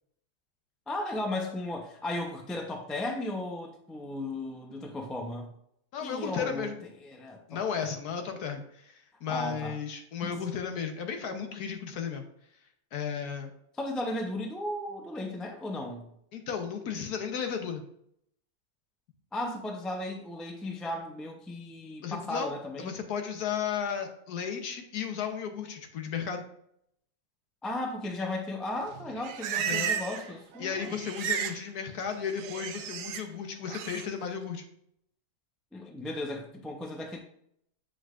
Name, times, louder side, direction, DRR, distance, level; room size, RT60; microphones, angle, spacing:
voice 1, 0.9-5.5 6.0-6.7 7.0-7.6 9.3-9.8 10.2-10.3 13.8-16.1 19.3-22.9 27.6-31.0 35.7-37.2, left 1 dB, ahead, 2 dB, 0.4 m, -35 dB
voice 2, 5.9-6.8 7.5-12.2 12.9-13.5 16.3-17.8 22.0-22.5 22.8-26.4 29.6-29.9 30.6-34.6, left 7 dB, 75° left, 6 dB, 1.4 m, -34 dB
Livestock farm animals working animals, 28.9-30.3 30.6-31.6 31.9-33.2 33.7-34.1, right 8 dB, 70° right, 0.9 m, -34 dB
8.0 x 5.0 x 2.5 m, 0.71 s
omnidirectional pair, 1.6 m